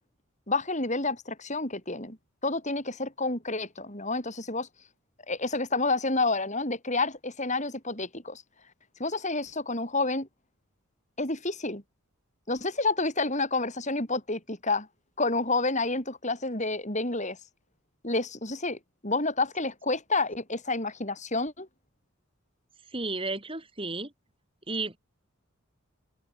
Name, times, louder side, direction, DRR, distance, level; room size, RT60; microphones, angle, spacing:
voice 1, 0.5-2.2 2.4-4.7 5.3-8.4 9.0-10.3 11.2-11.8 12.5-14.9 15.2-17.4 18.0-21.7, left 3 dB, 30° left, 5.6 m, -29 dB
voice 2, 22.9-24.1 24.7-25.0, right 3 dB, 25° right, 3.8 m, -33 dB
open air
head